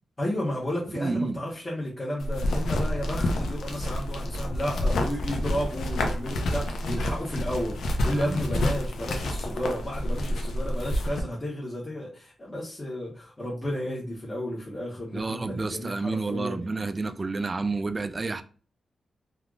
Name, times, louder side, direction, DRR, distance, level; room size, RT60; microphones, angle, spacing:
voice 1, 0.2-17.0, equal, 20° left, 1.0 m, -32 dB
voice 2, 0.9-1.4 8.1-8.4 15.1-18.4, right 3 dB, 30° right, 0.3 m, -30 dB
sound 1, 2.2-11.2, left 1 dB, 85° left, 0.5 m, -28 dB
3.4 x 2.4 x 2.4 m
cardioid pair, 95°, 0 cm